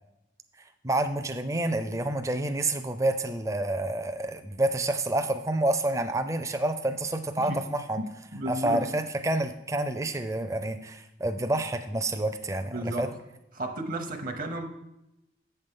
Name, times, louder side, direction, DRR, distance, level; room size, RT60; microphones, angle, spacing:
voice 1, 0.8-8.0 8.5-13.1, right 1 dB, 15° right, 8 dB, 0.5 m, -28 dB
voice 2, 8.0-8.9 12.6-13.1 13.5-14.6, right 1 dB, 50° right, 6 dB, 0.8 m, -33 dB
8.4 x 6.7 x 3.7 m, 0.89 s
head